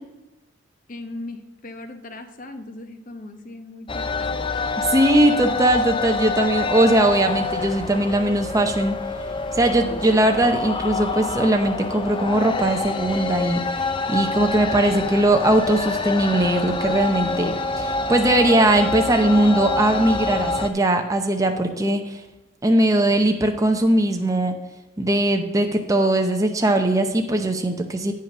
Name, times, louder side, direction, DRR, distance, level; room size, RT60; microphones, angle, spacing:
voice 1, 0.9-4.5, left 2 dB, 40° left, 6 dB, 0.9 m, -38 dB
sound 1, 3.9-20.7, left 3 dB, 25° left, 0.5 m, -27 dB
voice 2, 4.8-9.0 9.5-22.2 22.6-24.5 25.0-28.1, right 1 dB, 15° right, 4 dB, 0.7 m, -20 dB
sound 2, 5.6-5.9 6.4-6.6 7.6-8.0 8.5-8.7 9.6-9.8 10.3-10.6, right 2 dB, 70° right, 2.5 m, -45 dB
8.8 x 5.7 x 6.0 m, 1.1 s
head